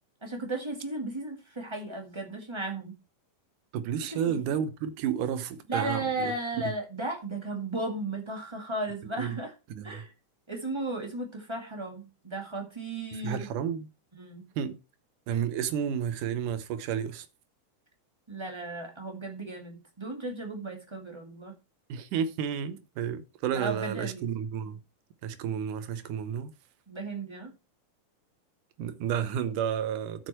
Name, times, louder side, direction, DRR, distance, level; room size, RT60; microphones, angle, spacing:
voice 1, 0.2-2.9 4.1-4.4 5.7-9.5 9.8-10.1 10.5-13.5 14.1-14.4 18.3-21.6 23.5-24.3 26.9-27.5, right 2 dB, 15° right, 1.2 m, -35 dB
voice 2, 3.7-6.3 9.2-9.4 9.7-10.0 13.2-13.9 14.6-14.8 15.3-17.3 21.9-24.8 25.2-26.5 28.8-30.3, right 8 dB, 80° right, 2.5 m, -31 dB
11.0 x 6.3 x 4.4 m
omnidirectional pair, 3.6 m